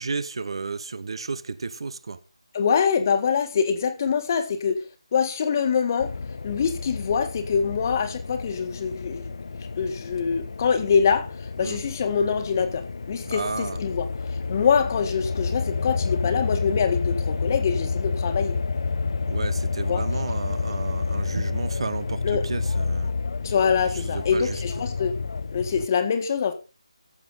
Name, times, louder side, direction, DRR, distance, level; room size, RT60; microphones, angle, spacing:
voice 1, 0.0-2.2 11.6-11.8 13.2-13.8 19.3-23.1 23.9-24.6, right 4 dB, 55° right, 1.0 m, -32 dB
voice 2, 2.5-4.8 5.1-6.1 6.4-9.3 9.8-11.3 11.6-14.1 14.5-18.6 19.9-20.0 22.2-22.4 23.4-25.2 25.5-26.5, left 6 dB, 30° left, 1.6 m, -24 dB
sound 1, 6.0-25.9, left 4 dB, 55° left, 0.6 m, -29 dB
15.0 x 7.5 x 4.1 m
figure-of-eight pair, 160°, 3 cm